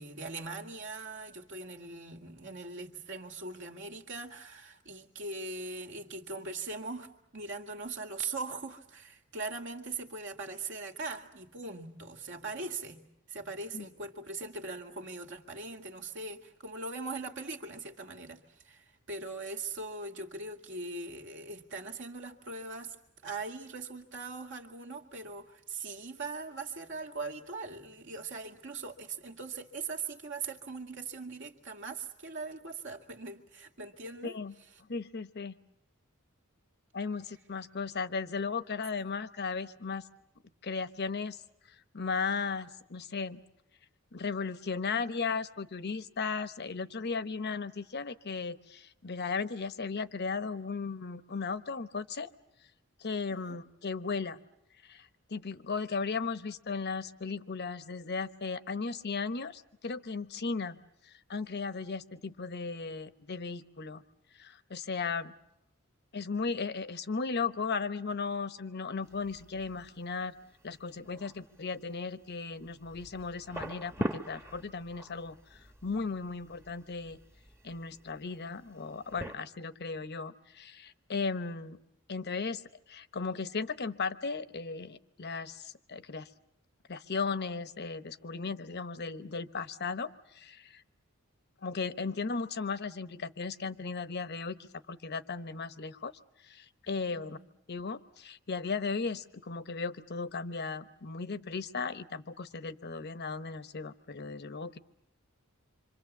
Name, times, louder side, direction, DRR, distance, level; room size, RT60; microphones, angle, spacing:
voice 1, 0.0-23.0 23.2-34.4 53.3-53.6 71.0-71.4 97.1-97.5, right 3 dB, 60° right, 5 dB, 2.1 m, -41 dB
voice 2, 34.2-34.5 34.9-35.5 36.9-40.0 40.6-41.4 41.7-43.4 44.1-52.3 53.0-54.4 54.8-60.8 61.0-64.0 64.3-65.3 66.1-70.3 70.6-77.2 77.6-81.8 82.1-82.6 82.9-86.3 86.9-90.8 91.6-94.6 94.9-96.1 96.4-97.4 97.7-104.8, left 4 dB, 50° left, 12 dB, 1.0 m, -36 dB
sound 1, 69.0-79.4, right 1 dB, 15° right, 1.1 m, -44 dB
27.0 x 25.5 x 7.3 m, 0.81 s
head